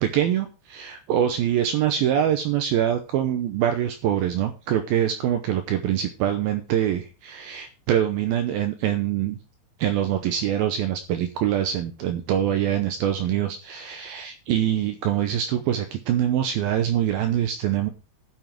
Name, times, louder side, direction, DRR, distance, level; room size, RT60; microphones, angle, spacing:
voice 1, 0.0-9.4 9.8-17.9, right 10 dB, 75° right, 7 dB, 2.3 m, -24 dB
11.5 x 7.1 x 4.6 m, 0.33 s
omnidirectional pair, 5.0 m